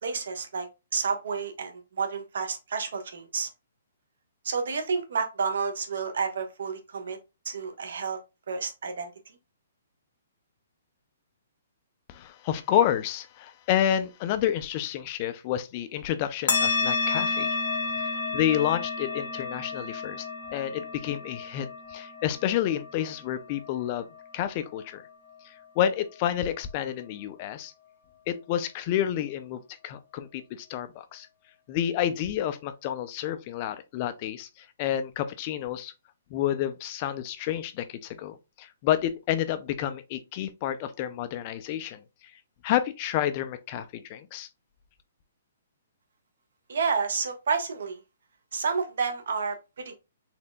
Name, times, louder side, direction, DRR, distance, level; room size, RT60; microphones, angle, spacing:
voice 1, 0.0-3.5 4.4-7.2 7.4-8.2 8.5-9.1 46.7-48.0 48.5-49.9, right 5 dB, 70° right, 1.1 m, -30 dB
voice 2, 12.1-17.5 18.0-20.3 20.5-24.1 24.3-25.0 25.4-27.7 28.3-31.3 31.7-35.9 36.3-42.0 42.6-44.5, left 11 dB, 30° left, 0.4 m, -29 dB
sound 1, 16.5-25.4, left 4 dB, 55° left, 1.5 m, -31 dB
4.2 x 3.7 x 2.2 m
hypercardioid pair, 165°, 0 cm